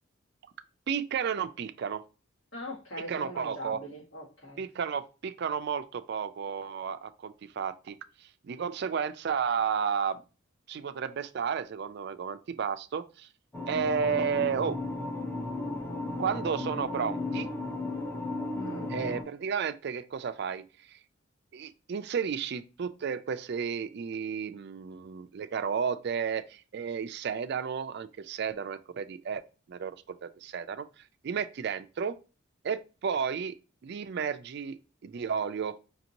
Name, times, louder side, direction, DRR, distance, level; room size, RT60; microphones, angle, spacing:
voice 1, 0.9-2.0 3.1-3.8 4.6-7.9 8.2-10.2 10.7-13.3 13.7-14.8 16.2-17.5 18.9-21.0 21.5-29.4 29.7-30.8 31.2-32.2 32.6-33.6 33.8-34.8 35.0-35.8, right 6 dB, 55° right, 0.4 m, -32 dB
voice 2, 2.5-4.6 18.5-18.9, left 1 dB, 70° left, 1.9 m, -41 dB
sound 1, 13.5-19.2, left 2 dB, 10° left, 0.8 m, -35 dB
5.1 x 2.6 x 2.8 m
head